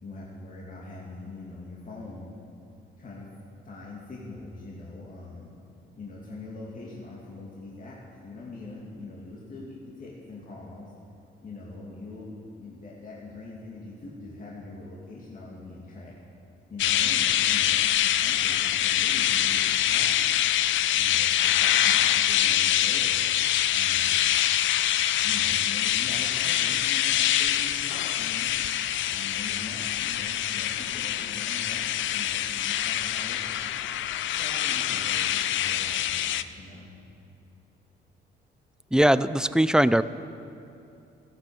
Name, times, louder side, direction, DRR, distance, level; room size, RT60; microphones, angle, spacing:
voice 1, 0.0-2.3 3.0-5.5 6.0-10.9 11.4-16.1 16.7-20.5 20.9-23.2 23.7-24.2 25.2-28.6 29.1-33.9 34.4-36.9, left 2 dB, 40° left, -5 dB, 2.5 m, -43 dB
sound 1, 16.8-36.4, left 12 dB, 75° left, 0.5 m, -25 dB
voice 2, 38.9-40.0, right 1 dB, 5° right, 15 dB, 0.4 m, -20 dB
14.5 x 12.0 x 7.0 m, 2.7 s
cardioid pair, 90°, 20 cm